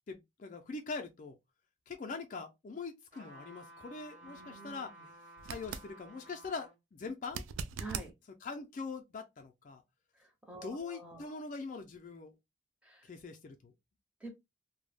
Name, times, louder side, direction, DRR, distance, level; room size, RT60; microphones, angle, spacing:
voice 1, 0.1-1.4 1.9-5.2 5.4-7.4 8.4-9.8 10.6-12.3 13.0-13.7, left 4 dB, 40° left, 0.3 m, -43 dB
sound 1, 3.1-6.8 7.3-7.4, right 1 dB, 40° right, 0.9 m, -54 dB
voice 2, 4.2-4.9 7.8-8.1 10.2-11.3 12.8-13.0 14.2-14.3, right 3 dB, 5° right, 0.6 m, -47 dB
sound 2, 5.4-5.9 7.3-8.1 11.1-11.2, right 6 dB, 80° right, 0.3 m, -40 dB
2.2 x 2.0 x 3.2 m
head